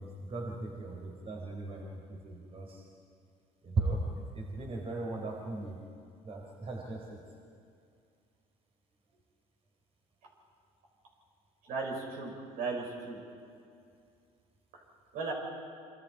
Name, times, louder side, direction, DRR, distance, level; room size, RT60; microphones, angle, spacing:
voice 1, 0.0-2.9 3.6-5.8 6.2-7.2, right 2 dB, 40° right, -1 dB, 4.0 m, -37 dB
voice 2, 11.6-13.2 14.7-14.8 15.1-15.3, right 4 dB, 70° right, -1 dB, 6.3 m, -36 dB
27.5 x 26.0 x 4.8 m, 2.4 s
supercardioid pair, 95°, 16 cm